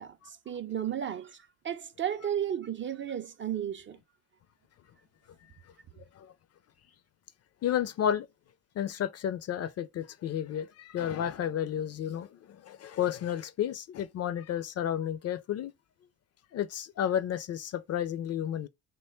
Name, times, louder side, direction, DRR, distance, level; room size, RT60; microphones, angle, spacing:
voice 1, 0.0-4.0, right 10 dB, 30° right, 0.4 m, -34 dB
voice 2, 7.6-8.3 8.8-15.7 16.5-18.7, left 10 dB, 40° left, 0.4 m, -32 dB
3.1 x 2.3 x 4.2 m
hypercardioid pair, 55°, 41 cm